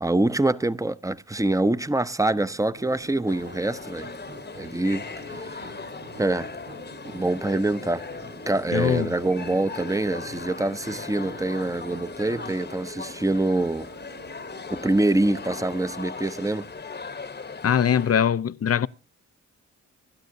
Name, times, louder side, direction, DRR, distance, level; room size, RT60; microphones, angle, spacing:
voice 1, 0.0-4.1 4.5-5.7 6.2-6.5 7.1-8.0 8.5-13.9 14.7-16.7, right 2 dB, 10° right, 0.7 m, -25 dB
sound 1, 2.2-12.6, right 3 dB, 35° right, 1.3 m, -46 dB
sound 2, 2.9-16.0, right 7 dB, 75° right, 3.8 m, -50 dB
sound 3, 3.3-18.2, left 4 dB, 35° left, 1.0 m, -39 dB
voice 2, 8.7-9.1 17.6-18.9, left 8 dB, 50° left, 0.6 m, -22 dB
25.5 x 12.0 x 2.7 m
cardioid pair, 65°, 31 cm